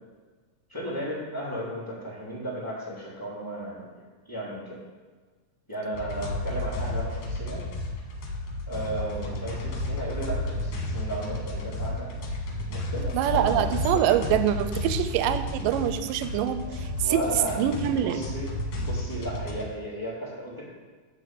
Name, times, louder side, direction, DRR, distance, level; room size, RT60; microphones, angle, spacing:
voice 1, 0.7-3.9 4.3-4.8 5.7-7.7 8.7-12.2 12.7-13.7 16.6-17.6 17.9-20.6, right 1 dB, 5° left, -7 dB, 2.5 m, -35 dB
sound 1, 5.9-19.7, left 1 dB, 80° left, 3.1 m, -32 dB
voice 2, 13.1-17.2 17.6-18.2, right 10 dB, 80° right, 11 dB, 2.1 m, -25 dB
10.5 x 4.0 x 7.6 m, 1.4 s
omnidirectional pair, 4.0 m